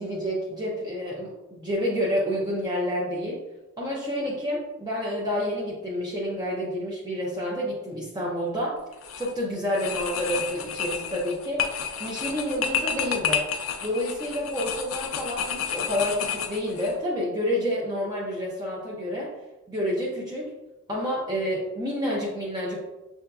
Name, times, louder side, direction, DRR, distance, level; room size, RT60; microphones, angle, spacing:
voice 1, 0.0-3.4 3.8-8.7 9.2-11.7 12.0-13.4 13.8-19.3 19.7-20.5 20.9-22.9, equal, 20° right, -4 dB, 0.6 m, -29 dB
sound 1, 8.9-9.3 9.7-16.9, left 7 dB, 85° left, 0.5 m, -30 dB
6.6 x 2.7 x 2.3 m, 1.0 s
head